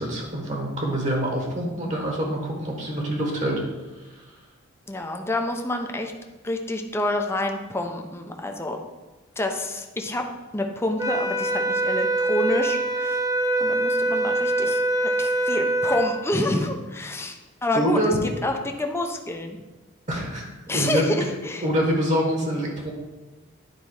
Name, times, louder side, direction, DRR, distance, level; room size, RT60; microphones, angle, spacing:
voice 1, 0.0-3.6 4.0-4.3 17.7-18.2 20.1-21.1 21.6-22.9, equal, 35° right, 0 dB, 1.4 m, -26 dB
voice 2, 4.9-6.1 6.4-8.8 9.4-10.3 10.5-13.2 13.6-18.0 18.4-19.6 20.7-21.7, left 1 dB, 10° left, 3 dB, 0.7 m, -28 dB
sound 1, 11.0-16.1, right 2 dB, 20° right, 0.8 m, -24 dB
9.4 x 4.1 x 4.8 m, 1.2 s
head